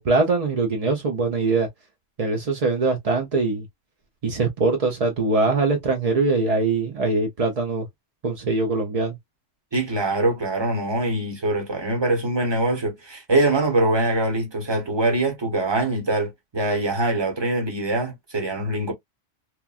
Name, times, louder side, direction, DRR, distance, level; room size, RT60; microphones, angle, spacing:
voice 1, 0.0-1.7 2.2-3.7 4.2-7.9 8.2-9.1, right 3 dB, 55° right, 0.4 m, -22 dB
voice 2, 9.7-18.9, right 2 dB, 25° right, 0.8 m, -23 dB
3.1 x 2.2 x 2.3 m
omnidirectional pair, 1.3 m